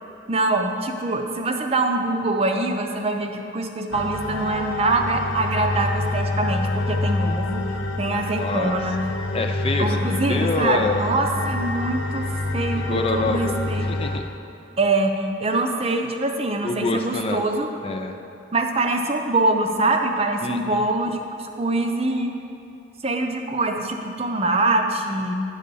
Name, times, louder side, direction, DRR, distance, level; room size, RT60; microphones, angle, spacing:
voice 1, 0.3-7.7 8.0-9.0 9.8-12.3 12.5-13.9 14.8-17.7 18.5-22.3 23.0-25.3, right 2 dB, 30° right, 4 dB, 0.6 m, -24 dB
sound 1, 3.9-14.2, left 2 dB, 85° left, 0.7 m, -27 dB
voice 2, 8.4-8.8 9.3-10.0 10.3-11.1 12.9-13.6 13.9-14.2 16.6-17.4 17.8-18.2 20.4-20.8, left 3 dB, 30° left, 5 dB, 0.4 m, -26 dB
9.5 x 4.9 x 6.8 m, 2.8 s
head